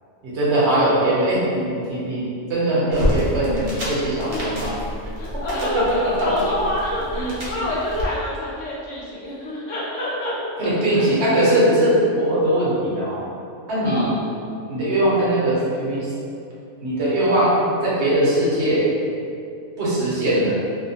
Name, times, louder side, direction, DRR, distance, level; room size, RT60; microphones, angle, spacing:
voice 1, 0.2-4.7 6.2-6.3 7.1-7.3 10.6-13.2 13.7-14.1 14.7-16.1 16.8-17.5 17.8-18.8 19.8-20.6, right 1 dB, 65° right, -8 dB, 0.9 m, -20 dB
sound 1, 2.9-8.1, equal, 40° right, 0.5 m, -29 dB
voice 2, 4.3-4.6 5.2-11.1 13.8-14.2, left 1 dB, 75° left, -6 dB, 0.9 m, -28 dB
2.6 x 2.1 x 2.7 m, 2.5 s
omnidirectional pair, 1.3 m